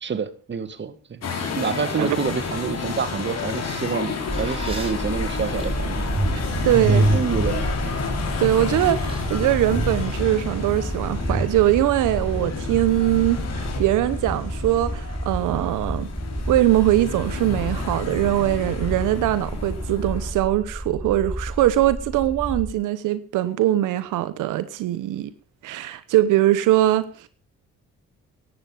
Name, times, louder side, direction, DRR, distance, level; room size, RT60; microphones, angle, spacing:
voice 1, 0.0-1.3 1.5-6.0 6.9-8.0, right 6 dB, 35° right, 1.8 m, -28 dB
sound 1, 1.2-20.3, left 5 dB, 55° left, 3.8 m, -31 dB
sound 2, 2.3-2.9 3.7-3.8 4.1-8.4 8.6-9.3 9.5-11.6, right 2 dB, 20° right, 7.0 m, -27 dB
sound 3, 4.3-22.7, equal, 5° right, 1.2 m, -31 dB
voice 2, 6.6-7.1 8.4-9.0 9.3-16.1 16.5-25.3 25.6-27.3, right 13 dB, 90° right, 1.1 m, -21 dB
15.0 x 11.5 x 5.6 m
cardioid pair, 90°, 30 cm